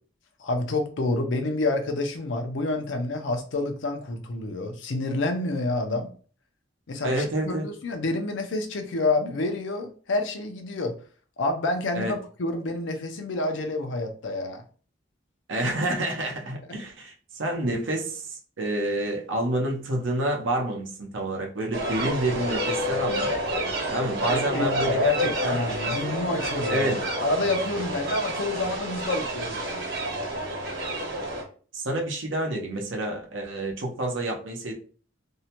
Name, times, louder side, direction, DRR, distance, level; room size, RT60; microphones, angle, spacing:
voice 1, 0.4-6.1 6.9-10.9 11.4-14.6 15.6-15.7 24.3-26.9 27.2-29.8, left 2 dB, 75° left, 5 dB, 0.5 m, -28 dB
voice 2, 7.0-7.6 11.9-12.2 15.5-23.3 23.9-25.1 25.4-25.6 26.7-27.1 31.7-34.7, right 1 dB, 80° right, 1 dB, 0.7 m, -28 dB
sound 1, 21.7-31.4, equal, 55° right, 1.1 m, -29 dB
2.6 x 2.1 x 2.8 m, 0.41 s
head